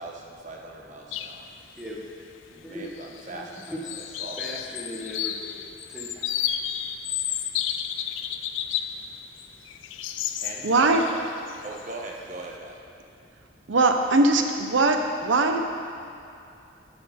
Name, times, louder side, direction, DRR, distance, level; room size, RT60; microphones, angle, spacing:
voice 1, 0.0-1.5 2.5-4.6 10.3-11.2 11.6-12.8, right 2 dB, 40° right, 0 dB, 1.0 m, -40 dB
sound 1, 1.1-1.4 1.8-1.9 2.8-3.3 3.5-9.0 9.4-12.1, left 10 dB, 80° left, 0.4 m, -32 dB
voice 2, 3.3-4.1 4.4-6.5, equal, 5° right, -5 dB, 0.8 m, -39 dB
voice 3, 10.6-11.0 13.7-15.0 15.2-15.6, right 3 dB, 80° right, 5 dB, 0.7 m, -20 dB
11.5 x 6.1 x 4.2 m, 2.6 s
head